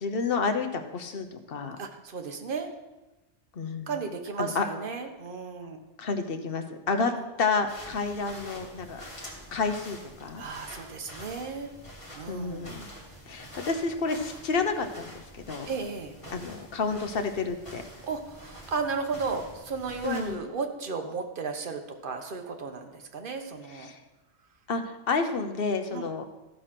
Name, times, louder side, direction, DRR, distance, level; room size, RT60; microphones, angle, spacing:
voice 1, 0.0-1.8 3.5-3.9 4.4-4.7 6.0-7.1 7.4-9.0 9.5-10.4 12.3-12.9 13.3-15.7 16.3-17.8 20.0-20.4 23.9-24.0 24.7-26.3, left 4 dB, 55° left, 7 dB, 1.1 m, -30 dB
voice 2, 1.8-2.7 3.9-5.8 7.0-7.2 10.4-11.7 12.1-13.1 15.7-16.1 18.0-23.9 25.9-26.1, right 4 dB, 50° right, 5 dB, 1.2 m, -34 dB
sound 1, 7.7-20.3, equal, 25° left, 2.6 m, -46 dB
14.0 x 4.8 x 5.9 m, 1.1 s
omnidirectional pair, 1.2 m